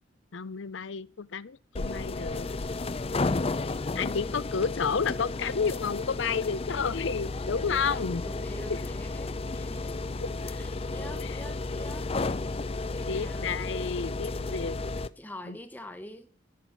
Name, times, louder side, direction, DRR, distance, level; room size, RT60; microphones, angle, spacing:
voice 1, 0.3-2.5 3.9-8.2 11.2-11.3 13.1-14.8 15.5-15.6, left 5 dB, 80° left, 0.6 m, -31 dB
sound 1, 1.7-15.1, left 3 dB, 30° left, 0.5 m, -33 dB
voice 2, 7.7-10.0 10.4-12.1 12.9-13.6 15.2-16.3, left 1 dB, 10° left, 1.0 m, -45 dB
13.0 x 6.1 x 8.5 m
head